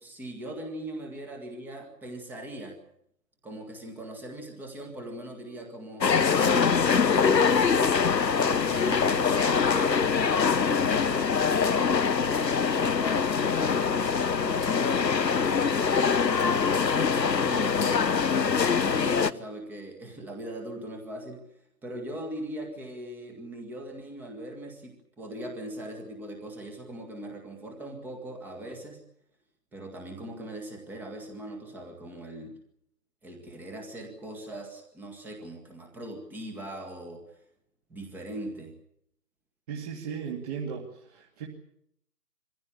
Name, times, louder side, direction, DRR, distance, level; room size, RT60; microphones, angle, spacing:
voice 1, 0.0-2.8 3.4-8.0 8.3-15.9 16.3-21.4 21.8-29.0 29.7-32.6 33.2-37.2 37.9-38.7, right 1 dB, 5° right, 3 dB, 1.8 m, -40 dB
sound 1, 6.0-19.3, left 6 dB, 85° left, 1.1 m, -24 dB
voice 2, 39.7-41.5, right 6 dB, 25° right, -1 dB, 2.4 m, -36 dB
23.5 x 15.5 x 9.9 m, 0.73 s
figure-of-eight pair, 150°, 49 cm